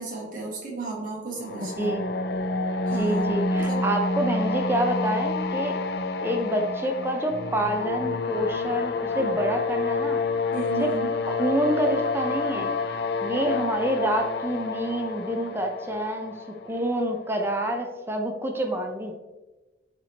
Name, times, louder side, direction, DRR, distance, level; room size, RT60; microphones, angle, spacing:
voice 1, 0.0-2.0 2.9-3.8 10.5-11.1, right 3 dB, 45° right, -3 dB, 1.8 m, -34 dB
sound 1, 1.4-17.2, left 3 dB, 60° left, 0.4 m, -28 dB
voice 2, 1.6-2.0 2.9-5.7 6.2-10.2 10.8-10.9 11.3-12.7 13.2-16.4 16.6-19.1, right 1 dB, 15° right, 3 dB, 0.6 m, -27 dB
8.5 x 4.3 x 2.9 m, 1.2 s
head